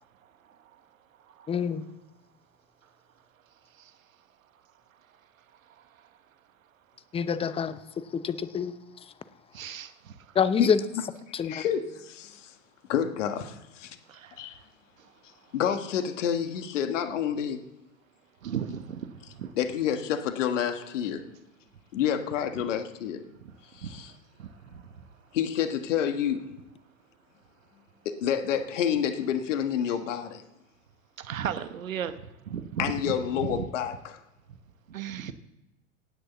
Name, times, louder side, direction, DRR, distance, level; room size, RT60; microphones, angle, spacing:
voice 1, 1.5-1.8 7.1-7.8 8.1-8.7 10.3-10.8 11.3-11.6, left 7 dB, 15° left, 0.7 m, -26 dB
voice 2, 10.6-11.0 11.4-12.5 12.9-14.0 14.4-14.6 15.5-17.6 19.2-21.3 21.9-23.2 23.7-24.1 25.3-26.5 28.0-30.4 32.8-34.2, left 9 dB, 65° left, 1.6 m, -29 dB
voice 3, 18.4-18.8 31.3-32.1 32.5-32.6 34.9-35.3, right 9 dB, 75° right, 1.1 m, -32 dB
18.0 x 6.6 x 7.4 m
figure-of-eight pair, 90°, 40 cm